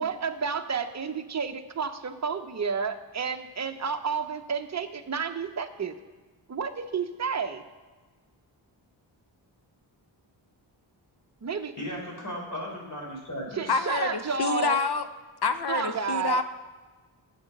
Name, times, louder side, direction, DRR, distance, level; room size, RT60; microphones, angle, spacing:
voice 1, 0.0-6.0 6.5-7.6 11.4-11.7 13.5-14.8 15.7-16.4, right 6 dB, 35° right, 7 dB, 0.9 m, -31 dB
voice 2, 11.8-13.8, equal, 40° left, -1 dB, 3.6 m, -36 dB
voice 3, 13.7-15.1 15.4-16.4, left 5 dB, 55° left, 10 dB, 0.7 m, -27 dB
8.6 x 7.5 x 5.4 m, 1.3 s
cardioid pair, 55°, 48 cm